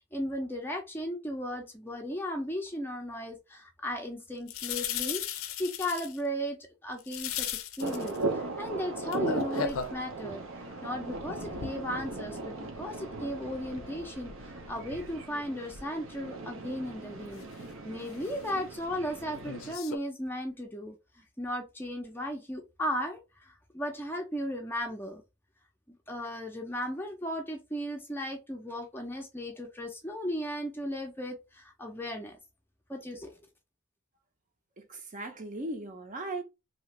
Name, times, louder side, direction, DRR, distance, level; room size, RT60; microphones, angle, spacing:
voice 1, 0.1-6.6 6.8-7.5 7.8-10.4 10.8-17.4 17.8-25.2 25.9-32.4 32.9-33.3, equal, 10° left, 0.5 m, -36 dB
sound 1, 4.5-6.2 7.0-8.2 9.1-10.0 10.7-12.4 12.7-15.2 15.6-15.7 17.3-17.5 18.0-18.5 19.4-20.0, left 8 dB, 80° left, 0.4 m, -38 dB
sound 2, 7.8-19.8, right 2 dB, 85° right, 0.7 m, -38 dB
voice 2, 34.8-36.4, right 2 dB, 35° right, 0.6 m, -38 dB
2.8 x 2.5 x 3.0 m
head